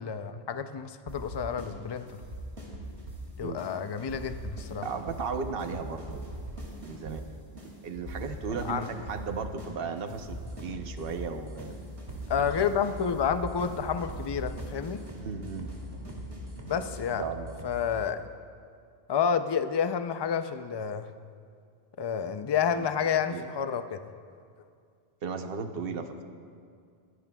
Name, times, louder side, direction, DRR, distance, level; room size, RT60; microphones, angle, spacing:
voice 1, 0.0-2.0 3.4-4.9 8.6-8.9 12.3-15.0 16.7-17.2 17.6-18.3 19.1-21.1 22.0-24.0, left 7 dB, 45° left, 9 dB, 0.3 m, -29 dB
sound 1, 1.1-1.7 2.0-3.2 3.6-3.7 4.0-7.2 7.6-7.7 7.9-9.7 10.0-11.2 11.6-11.7 12.0-17.1, right 1 dB, 85° right, 2.7 m, -41 dB
voice 2, 4.8-6.4 6.8-7.3 7.5-11.8 12.4-12.5 15.2-15.8 16.0-16.1 17.2-17.5 22.8-22.9 23.3-23.4 25.2-26.2, right 5 dB, 60° right, 7 dB, 1.0 m, -36 dB
sound 2, 10.1-17.9, equal, 25° right, 2.1 m, -44 dB
21.0 x 16.5 x 2.3 m, 2.3 s
omnidirectional pair, 1.1 m